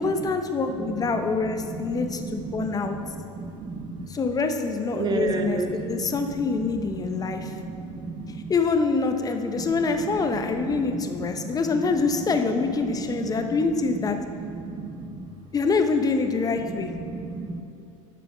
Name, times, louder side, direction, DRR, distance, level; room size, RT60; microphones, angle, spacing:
voice 1, 0.0-3.0 4.1-7.5 8.5-14.2 15.5-16.9, left 4 dB, 20° left, 6 dB, 0.8 m, -25 dB
voice 2, 0.7-1.2 1.7-4.1 4.9-6.6 7.0-8.5 9.5-9.9 10.4-11.9 13.4-13.6 14.4-15.3 16.7-17.6, right 3 dB, 25° right, 5 dB, 0.8 m, -33 dB
8.6 x 5.1 x 5.8 m, 2.7 s
hypercardioid pair, 90°, 17 cm